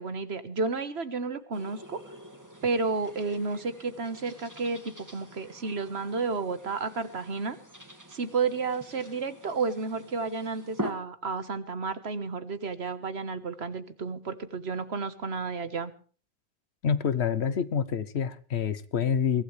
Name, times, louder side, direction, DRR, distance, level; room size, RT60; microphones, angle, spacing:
voice 1, 0.0-2.0 2.6-7.6 8.1-15.9, right 4 dB, 75° right, 11 dB, 1.7 m, -31 dB
sound 1, 1.5-10.9, equal, 15° right, 2.1 m, -44 dB
voice 2, 16.8-19.4, left 7 dB, 80° left, 14 dB, 1.2 m, -27 dB
23.0 x 16.0 x 3.3 m, 0.40 s
omnidirectional pair, 1.1 m